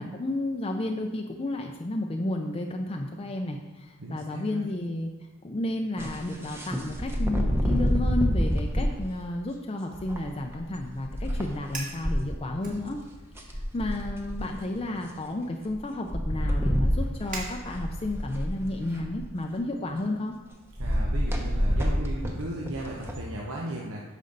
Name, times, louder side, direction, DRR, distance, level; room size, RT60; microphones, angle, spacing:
voice 1, 0.0-5.1 5.4-13.0 13.5-20.3, left 1 dB, 25° left, 2 dB, 0.5 m, -32 dB
voice 2, 4.0-4.6 20.8-24.0, right 1 dB, 80° right, -2 dB, 1.0 m, -36 dB
sound 1, 6.0-8.9 9.9-12.2 12.9-13.0 13.1-14.6 15.7-15.8 16.1-19.3 20.8-23.2, equal, 10° right, 0.9 m, -27 dB
Fire, 11.7-12.0 12.6-13.4 13.8-14.1 14.8-18.1, right 3 dB, 40° right, 1.7 m, -43 dB
9.3 x 6.3 x 3.9 m, 1.2 s
head